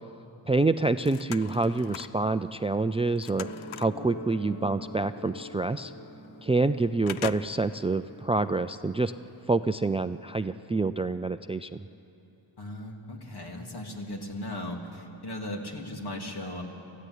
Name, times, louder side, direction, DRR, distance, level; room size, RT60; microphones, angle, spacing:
voice 1, 0.5-3.5 3.8-5.9 6.4-9.1 9.5-11.9, right 3 dB, 15° right, 12 dB, 0.4 m, -27 dB
sound 1, 0.7-2.2 2.7-4.0 5.2-5.3 5.7-5.8 6.2-6.7 7.1-7.9 8.3-8.4, left 10 dB, 80° left, 0.8 m, -41 dB
sound 2, 3.4-10.5 11.3-11.4, left 1 dB, 25° left, 1.5 m, -45 dB
voice 2, 12.6-16.6, left 1 dB, 50° left, 1 dB, 3.4 m, -37 dB
24.5 x 15.0 x 10.0 m, 3.0 s
cardioid pair, 75°, 48 cm